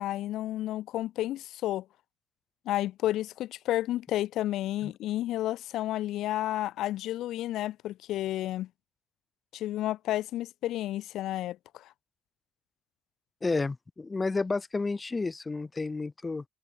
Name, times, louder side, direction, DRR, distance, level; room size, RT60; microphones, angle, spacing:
voice 1, 0.0-1.8 2.6-8.7 9.5-11.9, left 14 dB, 85° left, 1.1 m, -31 dB
voice 2, 13.4-16.4, left 3 dB, 25° left, 1.6 m, -31 dB
cardioid pair, 90°, 0 cm